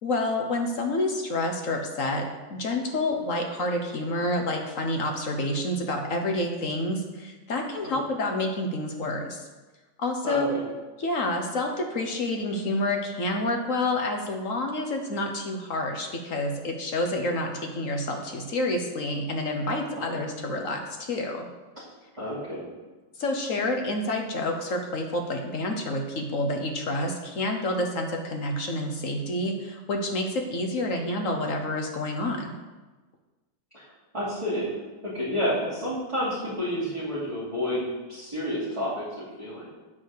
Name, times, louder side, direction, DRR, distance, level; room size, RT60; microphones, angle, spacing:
voice 1, 0.0-2.2 2.5-9.4 10.0-10.6 11.0-21.5 23.2-32.5, left 1 dB, 50° left, 3 dB, 1.2 m, -28 dB
voice 2, 10.2-10.7 19.9-20.6 22.2-22.6 33.7-33.8 34.1-34.7 35.0-39.7, equal, 15° right, -11 dB, 2.6 m, -30 dB
9.1 x 4.9 x 6.5 m, 1.2 s
omnidirectional pair, 2.2 m